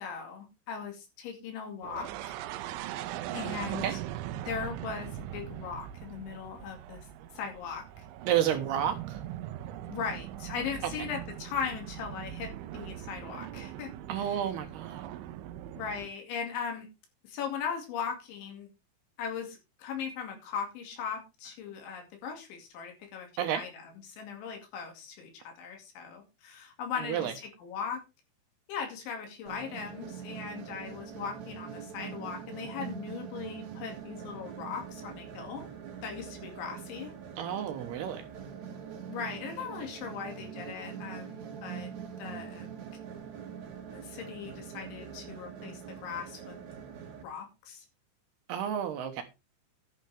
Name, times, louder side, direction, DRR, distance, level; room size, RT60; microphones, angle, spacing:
voice 1, 0.0-2.3 3.3-4.0 4.5-7.0 7.4-7.8 9.9-13.9 14.2-14.4 15.7-16.9 17.2-18.7 19.2-28.0 28.7-35.7 36.0-37.1 39.1-41.9 42.2-42.7 43.9-46.6 47.2-47.9, left 6 dB, 75° left, 4.7 m, -39 dB
sound 1, 1.8-16.1, right 12 dB, 90° right, 3.2 m, -41 dB
voice 2, 8.3-9.2 14.1-15.1 23.4-23.6 26.9-27.3 37.4-38.3 48.5-49.2, right 10 dB, 70° right, 2.8 m, -31 dB
sound 2, 29.5-47.2, right 7 dB, 50° right, 2.5 m, -43 dB
11.5 x 11.5 x 3.4 m
omnidirectional pair, 5.4 m